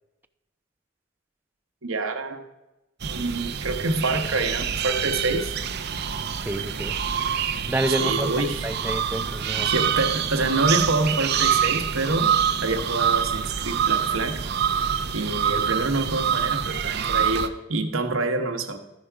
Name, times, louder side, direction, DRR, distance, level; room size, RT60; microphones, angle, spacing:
voice 1, 1.8-2.4 3.0-5.6 7.9-8.7 9.7-12.3 12.6-14.4 15.1-18.8, right 2 dB, 75° right, 5 dB, 1.1 m, -26 dB
sound 1, 3.0-17.5, right 8 dB, 55° right, 0.6 m, -26 dB
voice 2, 6.5-7.0 7.7-9.7, right 1 dB, 10° right, 10 dB, 0.3 m, -28 dB
13.5 x 4.9 x 4.5 m, 1.0 s
head